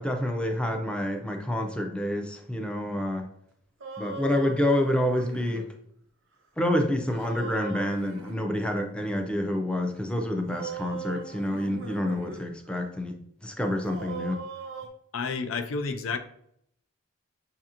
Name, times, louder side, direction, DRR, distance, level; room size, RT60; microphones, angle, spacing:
voice 1, 0.0-3.3 4.0-5.7 6.6-13.1 13.4-14.4, left 1 dB, 5° left, 4 dB, 0.4 m, -28 dB
sound 1, 3.8-5.7 7.1-8.4 10.5-12.4 12.8-12.9 13.9-14.9, right 4 dB, 80° right, 0.7 m, -39 dB
voice 2, 15.1-16.2, left 4 dB, 85° left, 9 dB, 0.4 m, -30 dB
6.1 x 2.8 x 2.5 m, 0.70 s
head